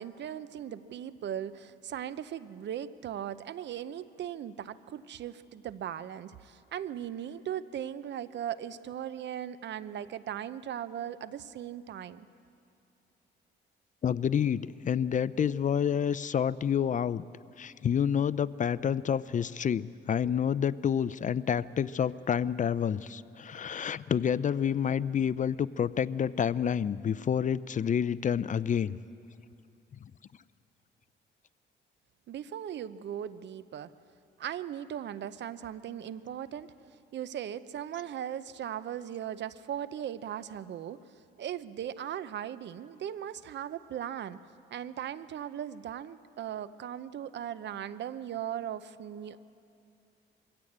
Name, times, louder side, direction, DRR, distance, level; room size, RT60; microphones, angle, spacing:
voice 1, 0.0-12.3 32.3-33.9 34.4-36.7 37.1-41.0 41.4-44.4 44.7-49.4, right 10 dB, 65° right, 15 dB, 0.7 m, -38 dB
voice 2, 14.0-17.2 17.6-29.0, left 8 dB, 40° left, 18 dB, 0.5 m, -28 dB
23.0 x 16.0 x 8.7 m, 2.6 s
cardioid pair, 90°, 20 cm